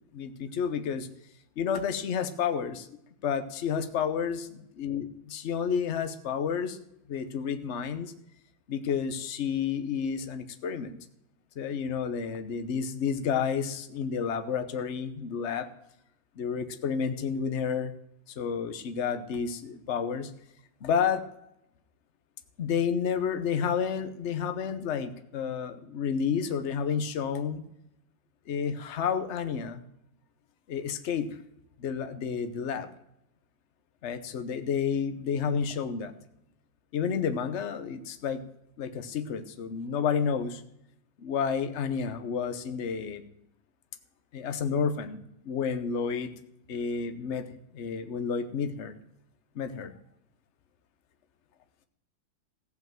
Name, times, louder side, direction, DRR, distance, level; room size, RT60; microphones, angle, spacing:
voice 1, 0.1-1.1 1.6-2.9 3.2-4.5 4.8-6.8 7.1-8.1 8.7-11.0 11.6-15.7 16.4-17.9 18.4-20.3 20.8-21.3 22.6-27.6 28.5-29.8 30.7-31.3 31.8-32.9 34.0-36.1 36.9-38.4 38.8-40.6 41.2-43.2 44.3-45.2 45.4-46.3 46.7-48.9 49.5-49.9, left 7 dB, 45° left, 9 dB, 0.9 m, -30 dB
15.0 x 5.7 x 7.5 m, 0.79 s
omnidirectional pair, 2.1 m